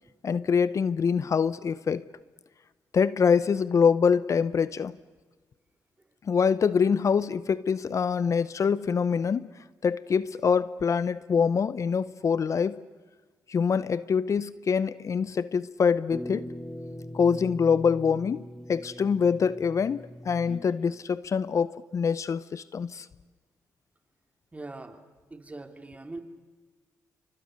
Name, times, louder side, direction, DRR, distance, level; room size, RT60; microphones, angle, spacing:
voice 1, 0.2-2.0 2.9-4.9 6.3-9.5 9.8-12.8 13.5-16.5 17.1-18.4 18.7-23.1, left 6 dB, 50° left, 17 dB, 0.7 m, -25 dB
sound 1, 16.1-21.1, equal, ahead, 1.4 m, -41 dB
voice 2, 24.5-25.0 25.3-26.2, right 2 dB, 20° right, 7 dB, 2.9 m, -42 dB
29.5 x 25.0 x 6.5 m, 1.4 s
cardioid pair, 70°, 7 cm